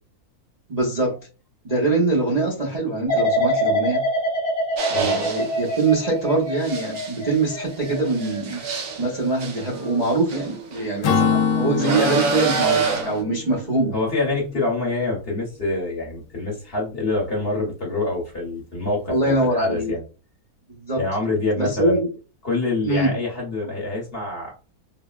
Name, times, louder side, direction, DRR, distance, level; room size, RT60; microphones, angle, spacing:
voice 1, 0.7-1.2 1.6-4.0 4.9-8.6 9.0-13.9 19.1-19.9 20.7-21.0 21.6-22.1 22.8-23.1, right 2 dB, 40° right, -5 dB, 0.6 m, -23 dB
sound 1, 3.1-10.0 10.4-10.9, equal, 90° right, 2.0 m, -26 dB
sound 2, 4.8-5.9 6.6-10.9 11.8-13.2, right 4 dB, 65° right, 1.0 m, -27 dB
Acoustic guitar / Strum, 11.0-14.7, left 6 dB, 70° left, 0.8 m, -25 dB
voice 2, 13.9-20.0 21.0-22.0 22.4-24.5, left 2 dB, 45° left, -2 dB, 1.0 m, -26 dB
3.9 x 2.0 x 2.3 m, 0.34 s
omnidirectional pair, 1.6 m